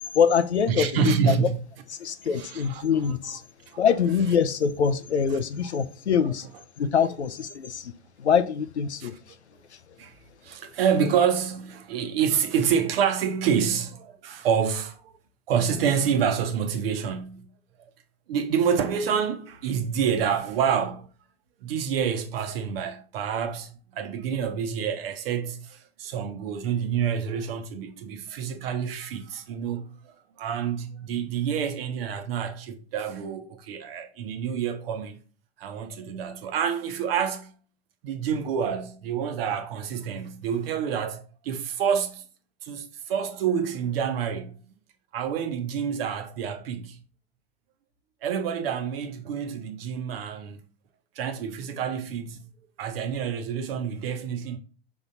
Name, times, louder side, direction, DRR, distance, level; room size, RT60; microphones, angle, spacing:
voice 1, 0.1-0.9 1.3-1.4 2.0-3.4 3.8-6.5 6.8-7.9 8.2-9.1, left 7 dB, 80° left, 0.6 m, -24 dB
voice 2, 0.7-1.6 2.2-2.8 3.7-3.8 6.2-6.3 7.0-7.1 9.0-9.1 10.0-10.1 10.4-15.1 15.5-17.5 18.3-21.1 21.6-30.0 30.4-35.2 35.6-37.5 38.0-42.3 42.6-44.7 45.1-47.0 48.2-50.6 51.1-52.5 52.8-54.6, right 7 dB, 60° right, 1.0 m, -28 dB
6.0 x 3.8 x 4.1 m
figure-of-eight pair, 85°, 33 cm